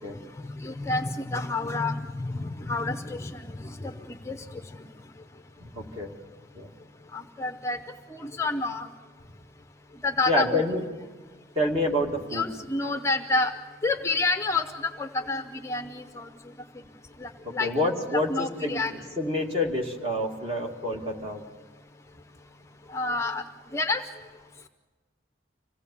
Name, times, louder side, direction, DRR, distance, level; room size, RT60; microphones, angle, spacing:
voice 1, 0.4-4.8 7.1-7.8 8.1-8.9 10.0-10.6 12.3-13.5 13.8-16.3 17.2-17.7 18.1-19.0 22.9-23.4 23.7-24.0, left 3 dB, 15° left, 7 dB, 0.6 m, -29 dB
voice 2, 5.6-6.1 6.5-6.7 10.3-10.8 11.6-12.5 17.4-21.4, left 1 dB, 30° right, 1 dB, 2.3 m, -28 dB
25.5 x 17.0 x 7.1 m, 1.3 s
head